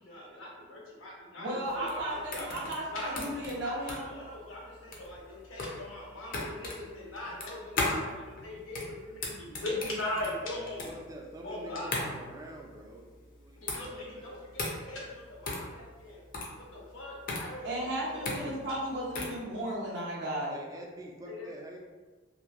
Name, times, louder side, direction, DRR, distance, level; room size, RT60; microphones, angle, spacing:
voice 1, 0.0-2.5 2.9-3.3 3.6-10.9 11.4-12.1 13.6-16.2 16.6-18.5 21.3-21.5, left 1 dB, 85° left, -4 dB, 0.8 m, -40 dB
voice 2, 1.4-4.1 17.6-20.6, right 1 dB, 60° right, -4 dB, 0.7 m, -35 dB
sound 1, 1.7-19.4, left 2 dB, 45° left, 0.5 m, -37 dB
voice 3, 10.5-14.2 20.5-21.8, right 1 dB, 20° right, 0 dB, 0.3 m, -47 dB
2.9 x 2.5 x 2.4 m, 1.4 s
head